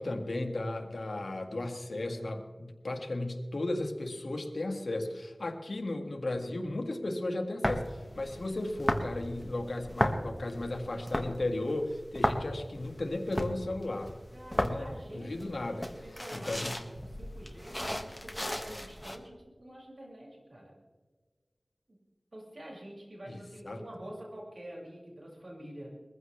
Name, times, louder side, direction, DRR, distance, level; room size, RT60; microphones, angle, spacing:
voice 1, 0.0-14.1 14.5-15.9 16.3-16.9 23.2-23.8, left 2 dB, 80° left, 3 dB, 1.8 m, -35 dB
sound 1, 7.6-19.2, equal, 10° left, 1.7 m, -35 dB
voice 2, 14.3-15.4 15.7-16.6 17.0-20.7 22.3-26.0, right 1 dB, 65° right, -4 dB, 6.1 m, -47 dB
22.0 x 15.0 x 3.3 m, 1.4 s
wide cardioid pair, 40°, 0 cm